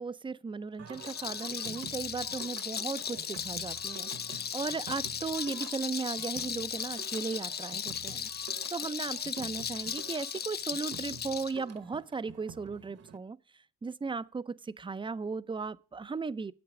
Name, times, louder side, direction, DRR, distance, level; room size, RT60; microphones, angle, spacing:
voice 1, 0.0-13.4 13.8-16.5, right 4 dB, 15° right, 0.5 m, -36 dB
Singing, 0.8-13.2, right 6 dB, 55° right, 1.1 m, -49 dB
Rattle, 0.9-11.5, left 8 dB, 35° left, 0.5 m, -37 dB
9.4 x 7.9 x 4.8 m
cardioid pair, 90°, 30 cm